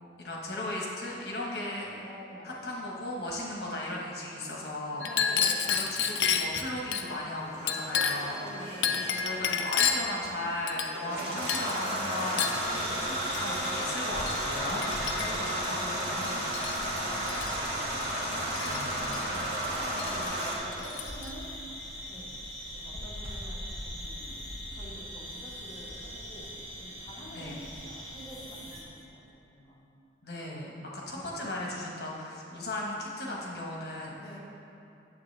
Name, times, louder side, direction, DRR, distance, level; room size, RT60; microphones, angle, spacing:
voice 1, 0.2-1.9 2.4-5.1 5.6-8.4 8.9-12.6 13.0-16.3 18.6-19.0 27.3-27.6 30.2-34.2, left 1 dB, 60° left, -3 dB, 1.4 m, -36 dB
voice 2, 2.0-2.8 5.0-6.2 8.3-9.7 11.1-11.6 12.6-13.5 14.7-21.5 22.1-22.4 22.7-29.8 31.0-31.5 34.2-34.4, equal, 25° left, -7 dB, 1.8 m, -48 dB
Chink clink, 5.0-7.1 7.7-8.3 8.8-10.2 10.7-11.2 11.5-11.8 12.4-12.7 13.3-13.5 14.3-14.4 14.8-15.5 16.2-16.9 17.2-17.5 18.6-19.2 20.0-20.1 20.4-21.3, left 7 dB, 75° left, 0.5 m, -30 dB
sound 1, 7.5-20.5, right 1 dB, 65° right, 1.7 m, -33 dB
sound 2, 12.6-28.8, equal, 30° right, 2.0 m, -42 dB
9.2 x 7.4 x 3.4 m, 2.7 s
head